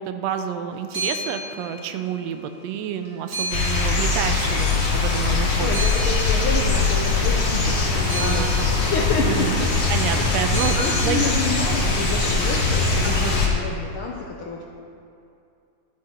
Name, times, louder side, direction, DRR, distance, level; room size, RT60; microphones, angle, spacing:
voice 1, 0.0-5.8 8.2-8.7 9.2-9.6 9.9-10.8 11.0-11.3 13.0-13.4, right 9 dB, 75° right, 8 dB, 1.6 m, -29 dB
sound 1, 0.7-2.4 2.7-5.0 5.4-11.9, equal, 30° right, 1.4 m, -35 dB
sound 2, 3.5-13.5, left 3 dB, 60° left, 0.7 m, -21 dB
voice 2, 5.6-8.5 8.8-9.7 10.1-14.6, left 3 dB, 80° left, -1 dB, 1.1 m, -29 dB
12.5 x 9.0 x 4.3 m, 2.5 s
omnidirectional pair, 3.5 m